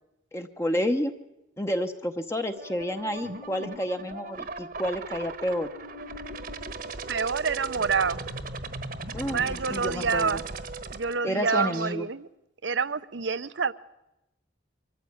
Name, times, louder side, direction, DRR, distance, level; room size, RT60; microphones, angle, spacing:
voice 1, 0.3-1.1 1.6-5.7 9.1-10.4 11.2-12.1, equal, 15° left, 6 dB, 0.8 m, -30 dB
sound 1, 2.6-11.9, right 3 dB, 50° right, 1.2 m, -38 dB
voice 2, 7.1-8.2 9.2-10.4 10.9-12.3 12.6-13.7, right 5 dB, 70° right, 16 dB, 0.8 m, -27 dB
24.0 x 14.0 x 8.6 m, 0.92 s
head